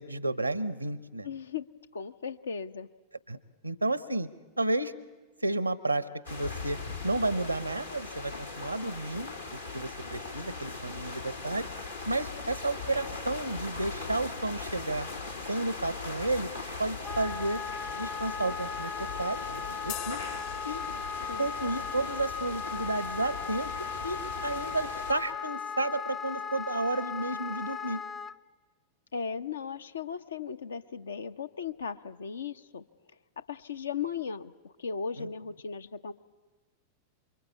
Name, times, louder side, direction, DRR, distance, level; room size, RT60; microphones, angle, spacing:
voice 1, 0.0-1.3 3.3-3.4 3.6-4.3 4.6-4.9 5.4-6.8 7.0-11.7 12.0-15.1 15.4-16.5 16.8-17.6 18.0-20.3 20.6-20.8 21.4-23.7 24.0-28.0 35.2-35.3, right 2 dB, 85° right, 16 dB, 1.0 m, -32 dB
voice 2, 1.2-1.7 1.9-2.9 21.3-21.5 29.1-32.8 33.4-36.1, left 6 dB, 70° left, 11 dB, 0.8 m, -37 dB
sound 1, 6.2-25.1, left 3 dB, 85° left, 3.0 m, -40 dB
Wind instrument woodwind instrument, 17.0-28.3, left 6 dB, 20° left, 0.8 m, -37 dB
sound 2, 19.9-21.5, left 10 dB, 45° left, 1.2 m, -43 dB
28.0 x 23.5 x 8.4 m, 1.3 s
figure-of-eight pair, 90°, 0 cm